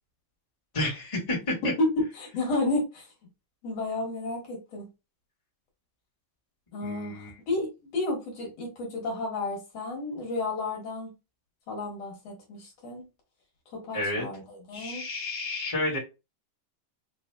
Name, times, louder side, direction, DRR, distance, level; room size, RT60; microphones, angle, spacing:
voice 1, 0.7-1.5 6.8-7.3 13.9-14.2 14.7-16.0, left 2 dB, 25° left, -4 dB, 0.6 m, -30 dB
voice 2, 2.2-3.1 3.6-4.8 6.7-11.1 11.7-13.0 13.7-15.0, left 2 dB, 55° left, -1 dB, 2.3 m, -32 dB
5.2 x 3.0 x 2.3 m, 0.26 s
omnidirectional pair, 4.0 m